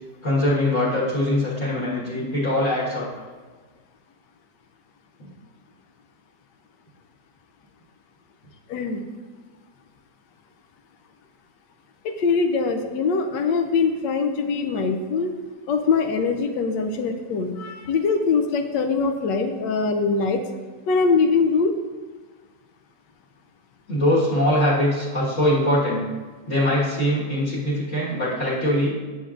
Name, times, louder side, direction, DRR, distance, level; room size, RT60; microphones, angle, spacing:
voice 1, 0.2-3.1 5.2-5.3 23.9-26.0 26.5-28.9, left 1 dB, 45° left, -9 dB, 1.8 m, -22 dB
voice 2, 8.7-9.0 12.0-15.3 15.7-20.4 20.9-21.7, left 4 dB, 85° left, 6 dB, 1.3 m, -22 dB
9.7 x 7.1 x 2.5 m, 1.4 s
omnidirectional pair, 1.9 m